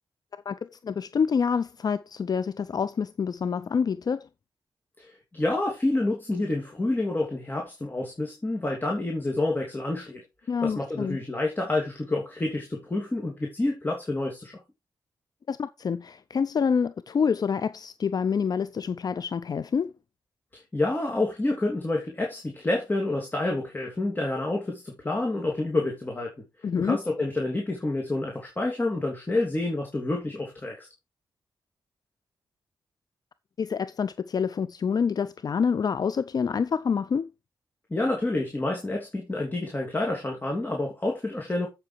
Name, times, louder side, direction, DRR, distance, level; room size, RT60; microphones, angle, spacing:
voice 1, 0.3-4.3 10.5-11.2 15.5-19.9 26.6-27.0 33.6-37.3, left 6 dB, 50° left, 0.5 m, -27 dB
voice 2, 5.0-10.2 10.6-14.5 20.5-26.3 26.8-30.9 37.9-41.7, left 2 dB, 25° left, 2.9 m, -28 dB
8.0 x 7.5 x 4.5 m
cardioid pair, 90°, 8 cm